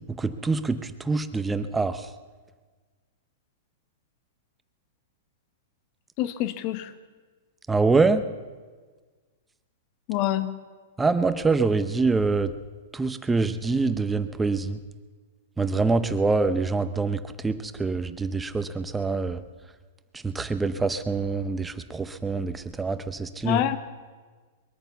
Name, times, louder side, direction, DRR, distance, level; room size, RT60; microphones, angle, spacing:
voice 1, 0.2-0.8 1.1-2.0 7.7-8.2 11.0-12.5 12.9-14.8 15.6-17.5 17.8-19.4 20.2-23.6, right 4 dB, 10° right, 11 dB, 0.7 m, -25 dB
voice 2, 6.2-6.9 10.1-10.5 23.4-23.8, left 13 dB, 45° left, 12 dB, 1.1 m, -26 dB
22.5 x 9.0 x 7.0 m, 1.5 s
hypercardioid pair, 145°, 0 cm